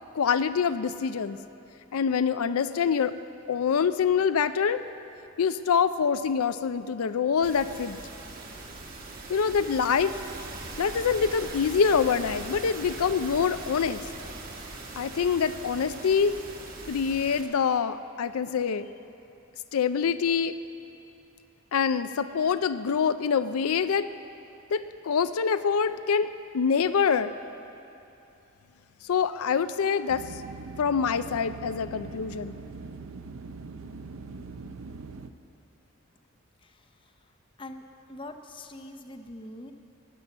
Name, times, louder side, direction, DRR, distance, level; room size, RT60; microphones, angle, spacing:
voice 1, 0.1-1.4 1.9-3.1 3.5-4.8 5.4-8.0 9.3-10.1 10.8-14.0 15.0-16.3 16.9-18.9 19.7-20.6 21.7-24.1 24.7-26.3 26.5-27.3 29.1-30.2 30.8-32.5, left 6 dB, 85° left, 12 dB, 0.4 m, -25 dB
sound 1, 7.4-17.4, right 2 dB, 40° right, 1.7 m, -40 dB
sound 2, 30.1-35.3, right 4 dB, 70° right, 0.6 m, -42 dB
voice 2, 36.6-37.1 37.6-37.8 38.1-39.7, left 1 dB, 25° left, 6 dB, 0.7 m, -43 dB
17.5 x 9.6 x 7.9 m, 2.8 s
head